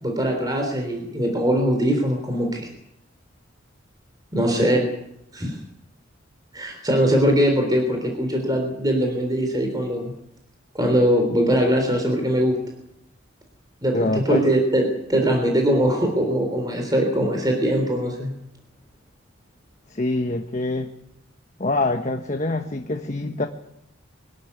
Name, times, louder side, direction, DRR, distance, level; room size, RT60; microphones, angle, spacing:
voice 1, 0.0-2.7 4.3-4.8 5.3-5.6 6.5-10.1 10.7-12.6 13.8-14.8 15.1-18.3, equal, 20° right, 3 dB, 3.6 m, -21 dB
voice 2, 13.9-14.5 19.9-20.9 21.6-23.5, left 2 dB, 40° left, 5 dB, 1.2 m, -25 dB
24.0 x 12.5 x 9.6 m, 0.79 s
head